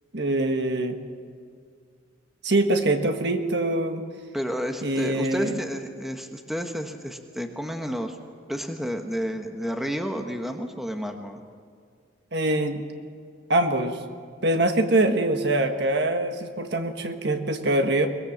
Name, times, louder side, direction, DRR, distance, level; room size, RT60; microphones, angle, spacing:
voice 1, 0.1-1.0 2.4-4.0 4.8-5.6 12.3-12.8 13.5-14.0 14.4-18.1, right 1 dB, 60° right, 6 dB, 1.5 m, -24 dB
voice 2, 4.3-8.2 8.5-11.4, equal, ahead, 5 dB, 1.2 m, -31 dB
23.0 x 20.5 x 7.4 m, 2.1 s
head